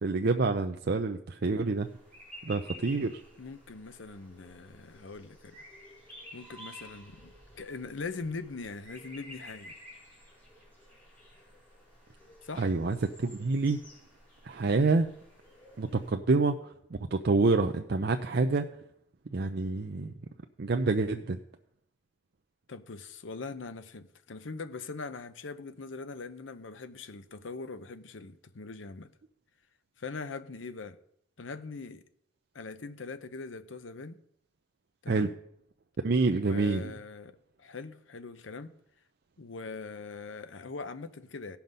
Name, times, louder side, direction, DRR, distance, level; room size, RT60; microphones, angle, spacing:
voice 1, 0.0-1.9 2.4-3.2 12.6-13.8 14.4-15.1 15.8-16.5 17.1-18.6 19.3-20.1 20.6-21.4 35.1-35.3 36.0-36.9, right 3 dB, 60° right, 0.5 m, -27 dB
sound 1, 1.7-16.1, equal, 10° left, 4.7 m, -52 dB
voice 2, 3.4-5.6 6.3-9.7 12.4-12.7 22.7-29.1 30.0-31.0 31.4-32.0 32.5-34.2 35.0-35.3 36.3-38.7 39.4-41.6, left 4 dB, 85° left, 0.8 m, -42 dB
16.5 x 5.9 x 5.3 m
head